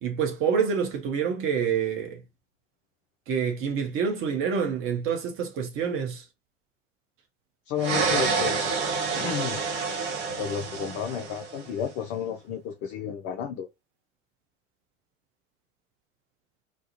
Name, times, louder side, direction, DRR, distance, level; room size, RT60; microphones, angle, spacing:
voice 1, 0.0-2.2 3.3-6.2, right 6 dB, 35° right, 0.6 m, -27 dB
voice 2, 7.7-8.7 9.2-9.6 10.4-13.7, left 8 dB, 35° left, 0.4 m, -32 dB
sound 1, 7.8-11.7, right 4 dB, 55° right, 1.0 m, -28 dB
2.3 x 2.1 x 2.7 m
figure-of-eight pair, 75°, 37 cm